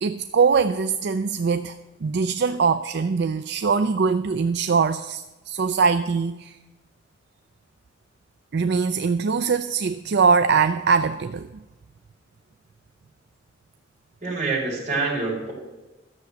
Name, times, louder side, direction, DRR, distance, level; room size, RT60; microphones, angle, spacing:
voice 1, 0.0-1.8 2.0-6.6 8.5-11.5, right 5 dB, 65° right, 10 dB, 0.4 m, -22 dB
voice 2, 14.2-15.5, right 3 dB, 40° right, -3 dB, 5.1 m, -26 dB
13.0 x 6.9 x 8.0 m, 1.1 s
head